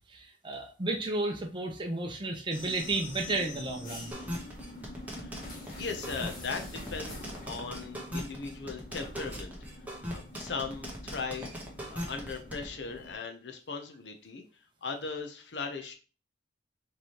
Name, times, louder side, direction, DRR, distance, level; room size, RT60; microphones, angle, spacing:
voice 1, 0.1-4.1, right 2 dB, 30° right, 2 dB, 0.7 m, -32 dB
sound 1, 2.5-13.1, left 1 dB, 50° left, 1.5 m, -46 dB
sound 2, 4.1-12.6, equal, 10° right, 1.1 m, -39 dB
voice 2, 5.1-9.6 10.1-11.6 11.9-14.4 14.8-15.9, left 4 dB, 80° left, 4 dB, 0.7 m, -38 dB
5.0 x 3.3 x 2.9 m, 0.36 s
head